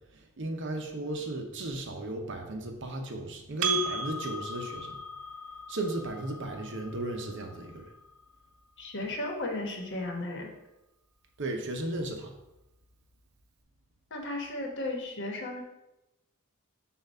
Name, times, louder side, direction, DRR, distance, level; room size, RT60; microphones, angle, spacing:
voice 1, 0.1-5.0 5.7-7.9 11.4-12.3, right 1 dB, 55° right, 3 dB, 0.8 m, -35 dB
Percussion, 3.6-8.4, right 4 dB, 85° right, 0.7 m, -37 dB
voice 2, 8.8-10.5 14.1-15.6, left 2 dB, 55° left, 1 dB, 1.1 m, -35 dB
7.1 x 2.4 x 5.5 m, 0.94 s
head